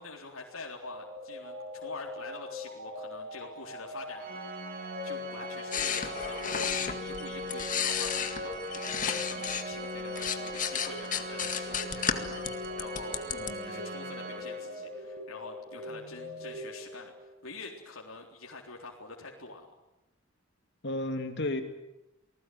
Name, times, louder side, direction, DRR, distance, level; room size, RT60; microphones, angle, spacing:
voice 1, 0.0-4.2 5.0-13.2 13.6-19.7, left 3 dB, 85° left, 0 dB, 3.8 m, -46 dB
sound 1, 0.8-17.4, left 3 dB, 75° right, 5.5 m, -42 dB
Organ, 4.2-15.0, right 1 dB, 45° right, 3.1 m, -41 dB
sound 2, 5.7-9.6 10.0-13.5, left 7 dB, 40° left, 2.0 m, -33 dB
voice 2, 13.3-13.8 15.9-16.5 20.8-21.6, left 1 dB, 60° left, 6 dB, 2.9 m, -35 dB
29.0 x 19.5 x 9.4 m, 0.95 s
head